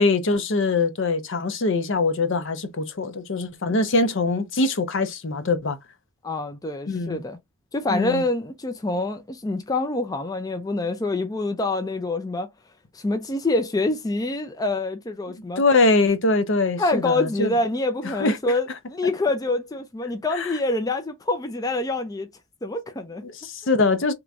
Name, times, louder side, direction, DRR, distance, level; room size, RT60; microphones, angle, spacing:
voice 1, 0.0-5.8 6.9-7.2 7.9-8.2 15.6-17.5 18.0-18.4 20.3-20.5 23.2-24.1, left 3 dB, 60° left, 0.7 m, -23 dB
voice 2, 6.2-7.4 7.7-12.5 12.9-15.6 16.8-22.3 22.6-23.2, left 2 dB, 15° left, 0.4 m, -26 dB
3.0 x 2.5 x 3.3 m
head